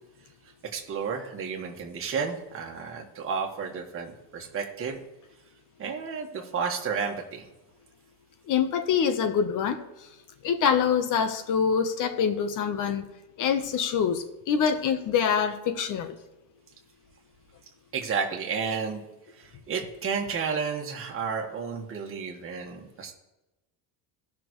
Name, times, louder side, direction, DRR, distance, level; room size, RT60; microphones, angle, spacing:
voice 1, 0.7-5.0 5.8-7.5 17.9-19.0 19.4-23.1, right 6 dB, 35° right, 0 dB, 1.6 m, -32 dB
voice 2, 8.5-9.8 10.4-13.0 13.4-16.1, left 7 dB, 50° left, 9 dB, 1.1 m, -25 dB
17.5 x 6.0 x 3.1 m, 1.0 s
cardioid pair, 150°, 39 cm